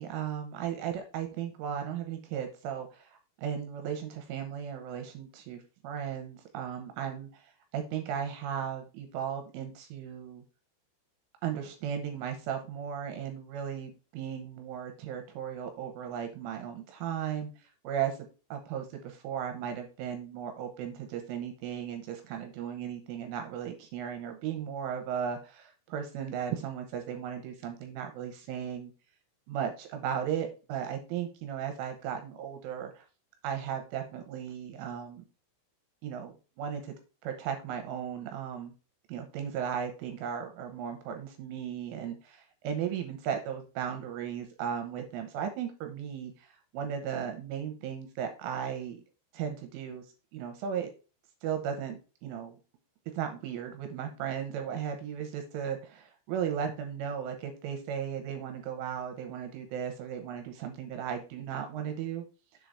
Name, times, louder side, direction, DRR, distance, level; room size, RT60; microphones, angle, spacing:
voice 1, 0.0-7.4 7.7-10.4 11.4-17.5 17.8-18.2 18.5-28.9 29.5-33.0 33.4-35.2 36.0-36.9 37.2-38.7 39.1-46.5 46.7-49.0 49.3-50.0 50.3-50.9 51.4-52.5 53.1-62.2, right 8 dB, 80° right, 5 dB, 3.3 m, -36 dB
7.3 x 3.9 x 4.7 m, 0.33 s
omnidirectional pair, 6.0 m